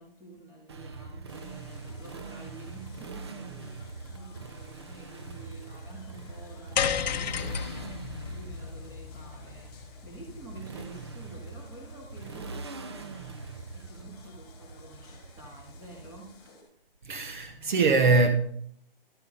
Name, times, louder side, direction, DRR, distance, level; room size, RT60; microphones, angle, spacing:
voice 1, 0.0-3.8 4.1-9.8 10.0-13.1 13.7-16.4, right 1 dB, 10° right, 2.2 m, -49 dB
Motorcycle, 0.7-16.5, right 4 dB, 30° right, 0.4 m, -43 dB
sound 1, 1.3-16.6, left 5 dB, 15° left, 3.1 m, -57 dB
sound 2, 6.8-11.1, left 8 dB, 45° left, 0.8 m, -33 dB
voice 2, 17.0-18.3, right 3 dB, 55° right, 1.3 m, -22 dB
12.0 x 5.6 x 5.4 m
hypercardioid pair, 155°, 29 cm